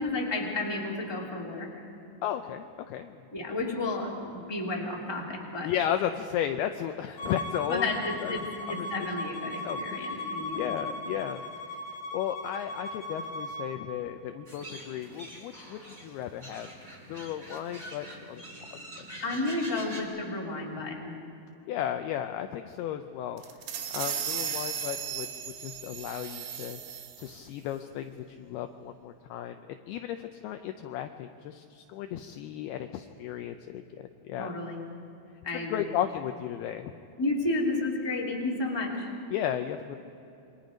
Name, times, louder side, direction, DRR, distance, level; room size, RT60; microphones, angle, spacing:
voice 1, 0.0-1.7 3.3-5.7 7.7-10.6 10.9-11.0 19.2-21.2 34.4-34.8 35.4-35.9 37.2-39.1, left 2 dB, 5° left, -3 dB, 2.2 m, -32 dB
voice 2, 2.2-3.2 5.6-7.9 8.2-9.1 9.6-11.4 12.1-16.7 17.1-18.4 18.7-18.8 21.7-23.4 23.9-26.8 27.2-33.8 34.2-34.5 35.5-36.9 39.3-40.0, left 10 dB, 80° left, 7 dB, 2.4 m, -34 dB
Bowed string instrument, 7.2-13.7, left 1 dB, 50° left, 3.1 m, -37 dB
sound 1, 14.5-20.0, right 1 dB, 10° right, 2.7 m, -45 dB
sound 2, 23.4-27.4, right 8 dB, 65° right, 2.8 m, -36 dB
28.0 x 23.5 x 5.2 m, 2.9 s
omnidirectional pair, 5.1 m